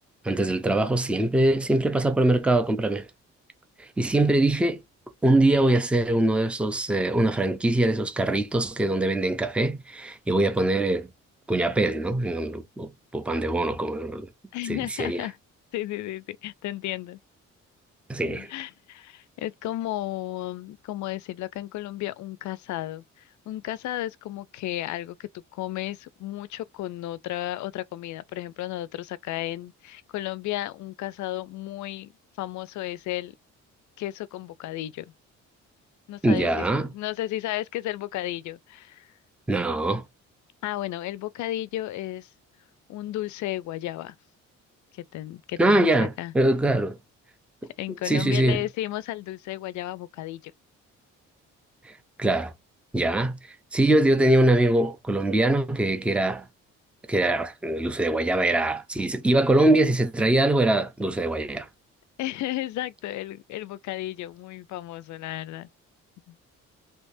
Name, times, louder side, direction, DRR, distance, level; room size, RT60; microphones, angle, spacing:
voice 1, 0.2-3.1 3.8-4.8 5.2-11.1 11.5-14.3 14.7-15.2 18.1-18.5 36.2-36.9 39.5-40.0 45.6-47.0 48.1-48.6 51.8-51.9 52.2-52.5 52.9-53.4 53.7-56.5 57.1-61.7, right 1 dB, 5° right, 0.5 m, -23 dB
voice 2, 14.5-15.4 15.7-17.2 18.2-23.0 23.5-32.1 32.4-33.4 34.0-35.1 36.1-39.1 40.6-42.3 42.9-44.2 44.9-46.3 47.8-50.5 62.2-65.7 66.3-66.4, left 14 dB, 75° left, 0.4 m, -33 dB
3.4 x 2.9 x 2.6 m
cardioid pair, 90°, 30 cm